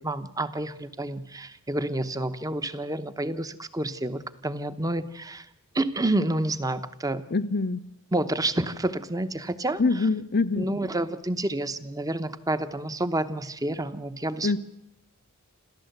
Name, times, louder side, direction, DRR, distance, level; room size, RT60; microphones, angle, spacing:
voice 1, 0.0-5.5 5.7-7.2 8.1-9.8 10.6-14.6, right 1 dB, 15° right, 12 dB, 0.9 m, -29 dB
voice 2, 7.3-7.8 9.8-10.7 14.4-14.6, left 3 dB, 45° left, 15 dB, 0.7 m, -24 dB
27.5 x 14.0 x 8.0 m, 0.86 s
head